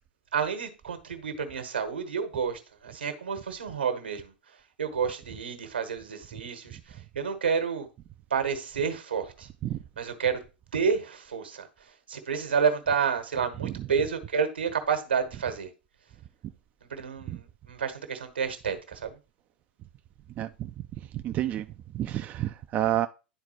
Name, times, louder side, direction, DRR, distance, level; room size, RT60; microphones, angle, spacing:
voice 1, 0.3-4.3 4.8-7.9 8.3-9.5 10.0-10.4 10.7-11.7 12.1-15.7 16.9-19.2, right 6 dB, 80° right, 1.3 m, -30 dB
voice 2, 20.4-20.7 21.1-21.7 21.9-23.1, right 13 dB, 30° right, 0.4 m, -29 dB
11.0 x 4.0 x 3.0 m
figure-of-eight pair, 90°, 6 cm